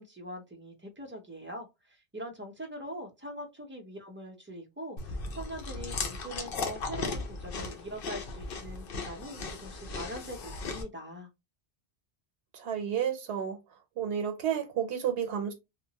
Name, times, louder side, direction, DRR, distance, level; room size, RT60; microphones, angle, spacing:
voice 1, 0.0-11.3, equal, 15° right, 0.4 m, -42 dB
Chewing mastication, 5.0-10.8, left 4 dB, 65° left, 0.8 m, -37 dB
voice 2, 12.5-13.6 14.0-15.5, right 8 dB, 85° right, 0.8 m, -31 dB
2.8 x 2.1 x 2.7 m
omnidirectional pair, 1.1 m